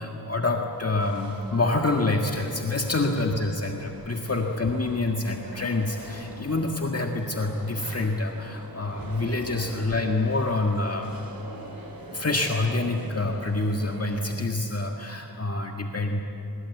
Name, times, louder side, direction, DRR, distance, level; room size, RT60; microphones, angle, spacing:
voice 1, 0.0-11.2 12.1-16.2, left 2 dB, 40° left, 2 dB, 1.7 m, -27 dB
sound 1, 0.7-14.3, right 1 dB, 60° right, 3.6 m, -43 dB
23.0 x 22.0 x 8.3 m, 2.8 s
wide cardioid pair, 75°, 39 cm